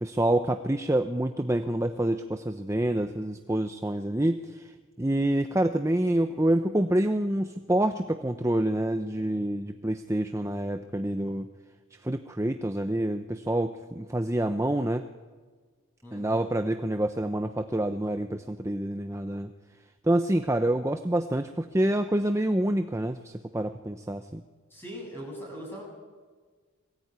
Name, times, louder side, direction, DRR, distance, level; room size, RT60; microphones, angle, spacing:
voice 1, 0.0-4.7 5.0-11.5 12.0-15.0 16.1-19.5 20.0-24.4, right 1 dB, 15° right, 7 dB, 0.6 m, -27 dB
voice 2, 16.0-16.4 24.7-25.8, equal, 10° left, -1 dB, 7.9 m, -40 dB
22.0 x 16.5 x 9.4 m, 1.4 s
head